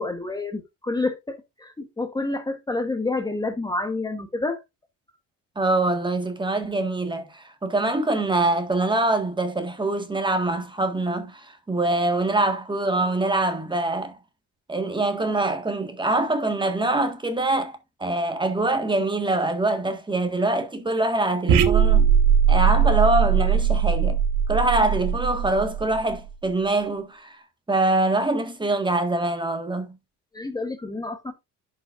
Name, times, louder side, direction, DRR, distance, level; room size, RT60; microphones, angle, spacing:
voice 1, 0.0-4.6 30.3-31.3, left 3 dB, 10° left, 1.1 m, -28 dB
voice 2, 5.6-14.2 14.7-22.1 22.5-24.2 24.5-27.4 27.7-29.9, right 2 dB, 15° right, 1.7 m, -24 dB
sound 1, 21.5-26.1, right 7 dB, 80° right, 1.4 m, -20 dB
11.0 x 5.4 x 2.5 m
cardioid pair, 115°, 32 cm